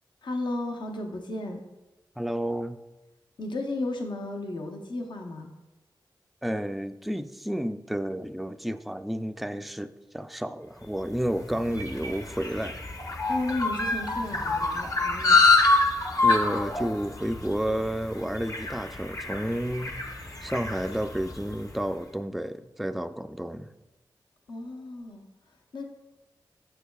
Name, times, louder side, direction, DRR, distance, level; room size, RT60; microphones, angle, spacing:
voice 1, 0.2-1.6 3.4-5.5 13.3-15.4 24.5-25.2 25.7-25.8, left 2 dB, 65° left, 2 dB, 0.8 m, -33 dB
voice 2, 2.2-2.8 6.4-12.8 16.2-23.7, equal, ahead, 10 dB, 0.3 m, -31 dB
sound 1, 11.1-21.6, left 3 dB, 45° left, 0.9 m, -26 dB
6.6 x 6.3 x 2.3 m, 1.1 s
cardioid pair, 55°, 8 cm